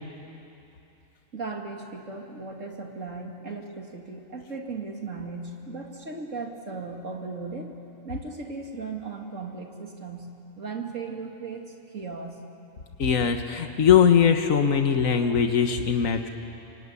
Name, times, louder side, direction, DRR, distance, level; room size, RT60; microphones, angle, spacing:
voice 1, 1.3-7.8 8.0-12.4, right 4 dB, 75° right, 2 dB, 2.8 m, -37 dB
voice 2, 13.0-16.3, left 7 dB, 90° left, 6 dB, 1.7 m, -21 dB
25.5 x 24.0 x 9.8 m, 2.9 s
omnidirectional pair, 1.3 m